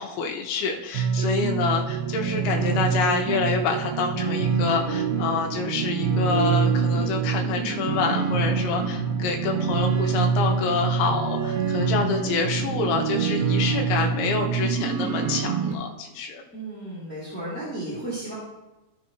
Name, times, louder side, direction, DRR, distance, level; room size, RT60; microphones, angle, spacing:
voice 1, 0.0-16.4, left 5 dB, 75° left, 2 dB, 3.3 m, -27 dB
sound 1, 1.0-15.7, right 6 dB, 70° right, 3.4 m, -25 dB
voice 2, 16.5-18.3, right 1 dB, 5° left, -11 dB, 1.8 m, -34 dB
14.5 x 6.6 x 3.0 m, 1.0 s
omnidirectional pair, 5.5 m